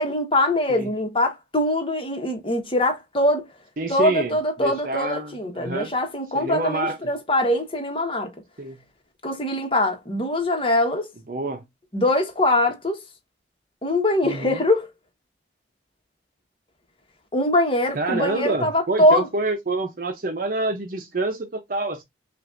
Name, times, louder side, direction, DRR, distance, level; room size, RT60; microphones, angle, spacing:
voice 1, 0.0-3.5 3.9-8.3 9.2-11.1 11.9-13.0 13.8-14.9 17.3-19.3, left 1 dB, 30° left, 1.3 m, -22 dB
voice 2, 3.8-5.9 6.3-7.0 8.6-8.8 11.3-11.6 14.2-14.6 17.9-22.0, right 2 dB, 50° right, 0.7 m, -27 dB
6.0 x 2.5 x 2.5 m
head